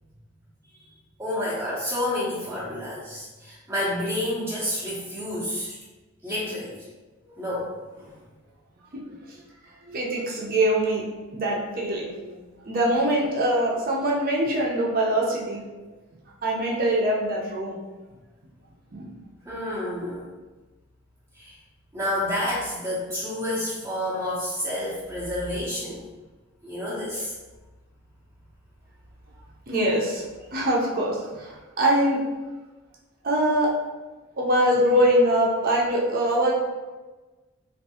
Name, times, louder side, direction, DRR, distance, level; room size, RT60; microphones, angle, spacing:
voice 1, 1.2-5.8 6.2-6.8 7.2-8.1 19.4-20.3 21.3-21.6 21.9-26.1 26.6-27.3, left 1 dB, 15° right, -10 dB, 0.7 m, -29 dB
voice 2, 8.9-9.4 9.8-11.0 11.3-15.6 16.4-17.8 18.9-19.1 29.7-30.2 30.5-32.2 33.2-33.7 34.4-36.6, right 1 dB, 45° right, -4 dB, 0.7 m, -23 dB
3.6 x 2.6 x 2.8 m, 1.2 s
head